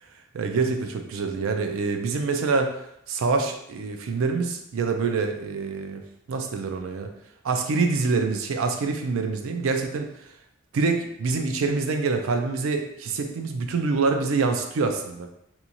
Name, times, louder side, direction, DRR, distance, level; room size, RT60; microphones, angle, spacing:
voice 1, 0.3-2.8 3.1-6.0 6.3-7.1 7.4-10.1 10.7-15.3, right 4 dB, 65° right, 5 dB, 0.4 m, -25 dB
2.9 x 2.3 x 2.6 m, 0.75 s
head